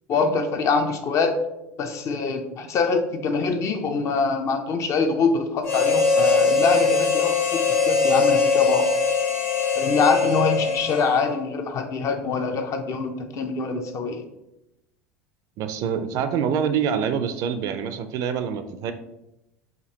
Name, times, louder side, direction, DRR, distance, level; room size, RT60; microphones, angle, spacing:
voice 1, 0.1-1.3 1.8-8.9 9.8-14.3, left 4 dB, 45° left, 6 dB, 0.5 m, -24 dB
Harmonica, 5.6-11.4, left 4 dB, 80° left, 0.7 m, -21 dB
voice 2, 15.6-18.9, right 7 dB, 55° right, 9 dB, 0.4 m, -25 dB
5.0 x 2.5 x 2.8 m, 0.90 s
hypercardioid pair, 90°, 7 cm